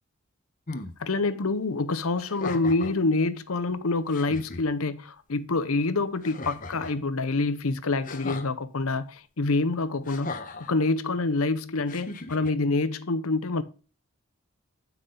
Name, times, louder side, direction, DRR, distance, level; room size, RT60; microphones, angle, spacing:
sound 1, 0.7-1.0 2.2-3.0 3.7-3.8 4.1-4.6 6.2-7.0 8.0-8.5 10.0-10.7 11.9-12.5, left 3 dB, 35° left, 1.0 m, -37 dB
voice 1, 1.0-10.3 10.7-13.6, left 3 dB, 75° left, 0.8 m, -26 dB
9.4 x 6.0 x 3.8 m
head